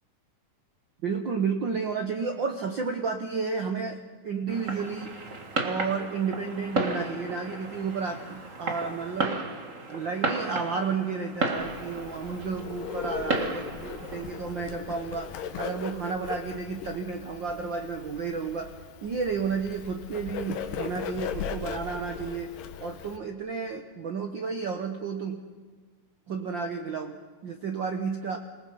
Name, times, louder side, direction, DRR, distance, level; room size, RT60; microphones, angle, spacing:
voice 1, 1.0-5.1 5.6-9.4 9.9-18.7 19.0-25.4 26.3-28.4, right 5 dB, 90° right, 5 dB, 1.0 m, -32 dB
Fireworks, 4.5-14.5, right 3 dB, 35° right, 1.4 m, -33 dB
Bird, 11.6-23.2, left 7 dB, 85° left, 2.8 m, -38 dB
27.5 x 19.0 x 5.5 m, 1.5 s
omnidirectional pair, 3.8 m